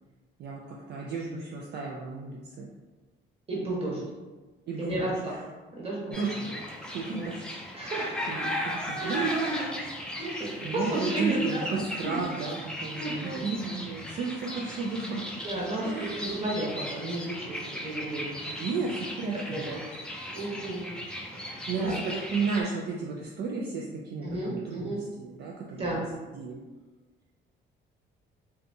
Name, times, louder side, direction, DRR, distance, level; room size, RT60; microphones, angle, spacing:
voice 1, 0.4-2.7 3.9-4.1 4.7-5.4 6.1-7.6 8.3-9.7 10.6-15.3 15.8-16.2 18.4-19.8 21.5-25.8 26.3-26.6, right 4 dB, 60° right, -2 dB, 0.4 m, -33 dB
voice 2, 3.5-4.0 4.8-5.3 5.7-6.1 7.1-7.3 7.7-8.3 9.0-9.3 10.2-11.7 12.0-12.2 13.0-13.7 15.4-18.6 19.5-19.8 20.3-20.9 21.3-22.0 24.2-25.0 25.8-26.1, right 2 dB, 30° right, -5 dB, 1.0 m, -33 dB
sound 1, 6.1-22.6, left 1 dB, 5° left, 0.4 m, -37 dB
2.6 x 2.3 x 2.6 m, 1.2 s
cardioid pair, 90°, 20 cm